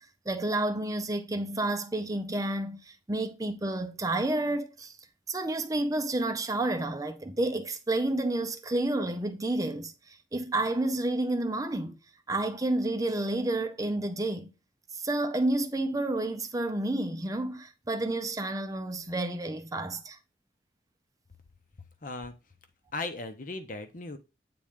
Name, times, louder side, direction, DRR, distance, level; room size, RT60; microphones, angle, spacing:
voice 1, 0.0-5.0 5.3-12.0 12.3-14.5 14.9-20.2, right 2 dB, 20° right, 0.6 m, -30 dB
voice 2, 22.0-22.3 22.9-24.2, left 3 dB, 50° left, 0.9 m, -37 dB
8.6 x 3.9 x 3.7 m
head